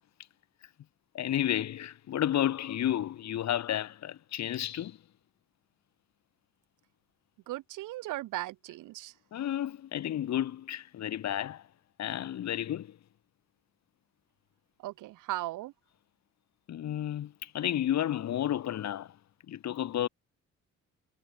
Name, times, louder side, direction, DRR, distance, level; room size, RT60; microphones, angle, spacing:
voice 1, 1.1-5.0 9.3-11.6 12.0-13.0 16.7-19.1 19.5-20.1, left 11 dB, 60° left, 1.5 m, -31 dB
voice 2, 7.5-9.1 14.8-15.7, right 17 dB, 90° right, 1.2 m, -37 dB
cardioid pair, 90°, 30 cm